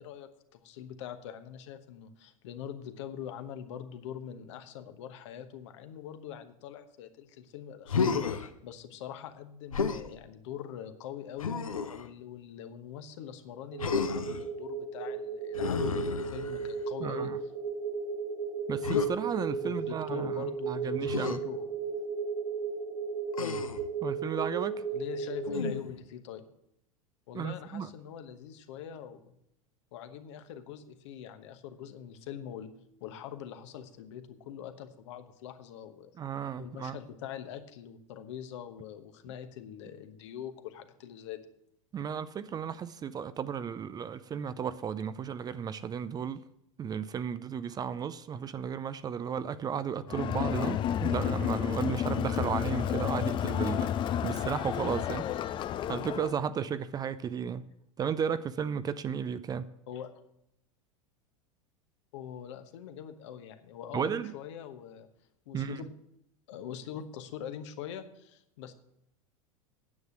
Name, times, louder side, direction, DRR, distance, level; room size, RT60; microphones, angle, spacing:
voice 1, 0.0-11.6 11.9-17.3 19.6-21.7 22.0-22.1 24.9-26.5 27.3-29.3 29.9-32.7 33.0-36.1 36.6-41.4 59.9-60.1 62.1-65.1 65.5-65.9 66.5-68.7, left 9 dB, 60° left, 8 dB, 1.1 m, -43 dB
Human voice, 7.9-8.5 9.7-10.1 11.4-12.1 13.8-14.4 15.5-16.8 18.8-19.1 21.1-21.4 23.3-23.9 25.4-26.0, left 5 dB, 80° left, 0.8 m, -31 dB
sound 1, 13.7-25.7, right 5 dB, 80° right, 1.7 m, -35 dB
voice 2, 17.0-17.4 18.7-21.4 24.0-24.8 27.3-27.9 36.2-37.0 41.9-46.4 46.8-53.9 54.2-55.3 55.9-57.6 58.0-59.7 63.9-64.3 65.5-65.8, right 7 dB, 20° right, 14 dB, 0.5 m, -34 dB
Crowd, 50.1-56.4, left 10 dB, 30° left, 0.5 m, -31 dB
9.6 x 8.0 x 6.2 m, 0.80 s
figure-of-eight pair, 85°, 17 cm